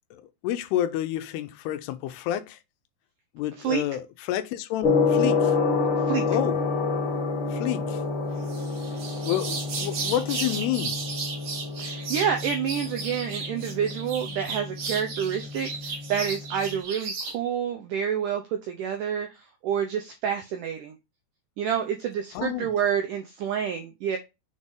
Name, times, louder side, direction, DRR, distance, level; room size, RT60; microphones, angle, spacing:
voice 1, 0.1-2.6 3.4-5.5 6.3-6.6 7.5-8.0 9.2-11.0 22.4-22.7, left 12 dB, 85° left, 2.7 m, -29 dB
Gong, 4.8-16.8, left 4 dB, 70° left, 1.2 m, -28 dB
sound 1, 8.4-17.4, right 4 dB, 55° right, 3.2 m, -35 dB
voice 2, 11.8-21.0 21.6-24.2, right 8 dB, 85° right, 1.8 m, -28 dB
6.8 x 4.1 x 3.6 m
omnidirectional pair, 4.6 m